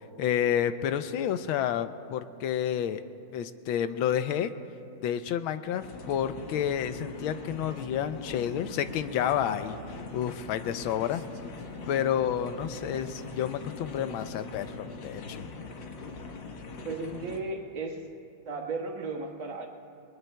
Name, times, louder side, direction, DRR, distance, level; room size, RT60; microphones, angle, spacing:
voice 1, 0.2-3.0 3.3-4.5 5.0-9.8 10.1-11.2 11.9-15.4, left 9 dB, 85° left, 11 dB, 1.4 m, -30 dB
sound 1, 5.8-17.4, left 3 dB, 65° left, 1.8 m, -42 dB
Male speech man speaking, 7.5-10.5 10.8-14.9, right 2 dB, 45° right, 0.8 m, -51 dB
voice 2, 16.8-18.1 18.5-19.7, right 3 dB, 75° right, 0 dB, 2.3 m, -35 dB
29.0 x 21.5 x 2.2 m, 2.6 s
omnidirectional pair, 2.2 m